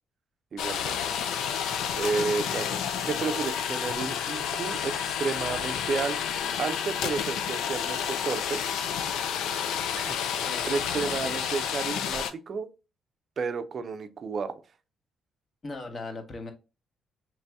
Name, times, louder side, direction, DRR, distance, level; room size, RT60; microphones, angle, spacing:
voice 1, 0.5-1.0 2.0-2.8 3.0-6.2 6.6-8.6 9.9-10.4 10.6-12.7 13.4-14.6, right 4 dB, 50° right, 0.4 m, -32 dB
sound 1, 0.6-12.3, left 8 dB, 85° left, 0.4 m, -30 dB
voice 2, 10.4-11.4 15.6-16.5, left 2 dB, 35° left, 0.9 m, -39 dB
3.0 x 2.7 x 3.4 m
cardioid pair, 90°, 0 cm